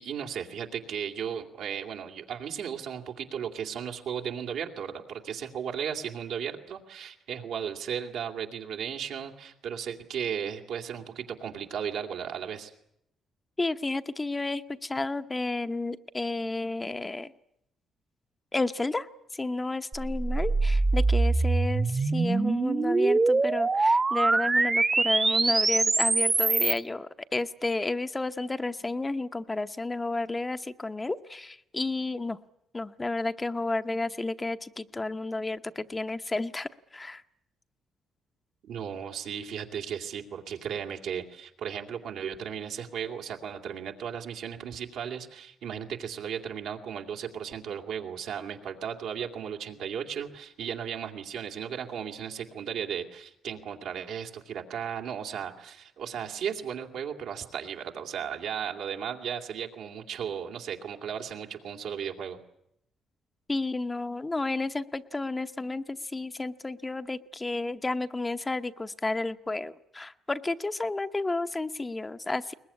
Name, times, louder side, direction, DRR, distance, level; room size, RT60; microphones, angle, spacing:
voice 1, 0.0-12.7 38.6-62.4, right 8 dB, 80° right, 3 dB, 2.5 m, -35 dB
voice 2, 13.6-17.3 18.5-32.4 32.7-37.2 63.5-72.5, left 2 dB, 20° left, 9 dB, 0.9 m, -32 dB
sound 1, 19.9-26.8, right 3 dB, 25° right, 1.1 m, -24 dB
22.0 x 20.0 x 9.9 m, 0.78 s
cardioid pair, 90°, 0 cm